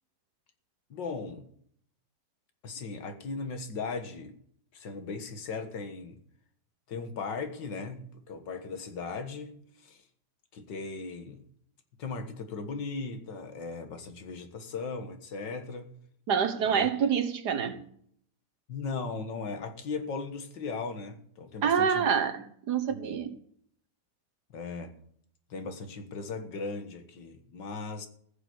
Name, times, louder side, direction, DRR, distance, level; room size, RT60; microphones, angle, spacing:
voice 1, 0.9-1.5 2.6-4.4 4.7-6.2 6.9-10.0 10.5-11.4 12.0-15.9 16.7-16.9 18.7-22.1 22.9-23.2 24.5-24.9 25.5-28.1, left 4 dB, 80° left, 2.2 m, -38 dB
voice 2, 16.3-17.8 21.6-23.4, right 7 dB, 65° right, 1.8 m, -27 dB
15.0 x 7.2 x 8.0 m
omnidirectional pair, 1.9 m